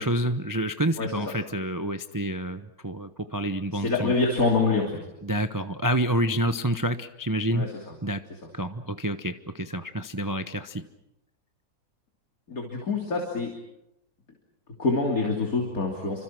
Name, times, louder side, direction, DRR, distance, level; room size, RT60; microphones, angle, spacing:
voice 1, 0.0-4.1 5.2-7.7 8.0-8.2 8.5-10.8, right 1 dB, 25° right, 9 dB, 0.4 m, -28 dB
voice 2, 3.7-5.0 7.5-7.9 12.5-13.5 14.8-16.2, left 3 dB, 50° left, 0 dB, 3.5 m, -26 dB
29.5 x 26.0 x 6.0 m, 0.86 s
omnidirectional pair, 2.0 m